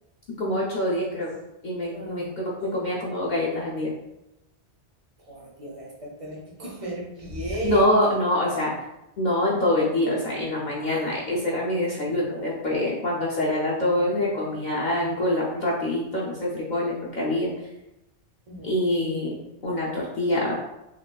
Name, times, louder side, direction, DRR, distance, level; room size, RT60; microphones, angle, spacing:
voice 1, 0.4-1.3 1.6-3.9 7.6-8.7 9.2-17.5 18.6-20.5, left 1 dB, 55° left, -6 dB, 0.6 m, -25 dB
voice 2, 1.9-2.4 5.2-8.0 10.8-11.2 18.5-18.7, right 1 dB, 40° right, -2 dB, 0.6 m, -35 dB
sound 1, 7.1-8.0, equal, 90° right, 1.3 m, -37 dB
3.0 x 2.9 x 2.2 m, 0.89 s
omnidirectional pair, 1.1 m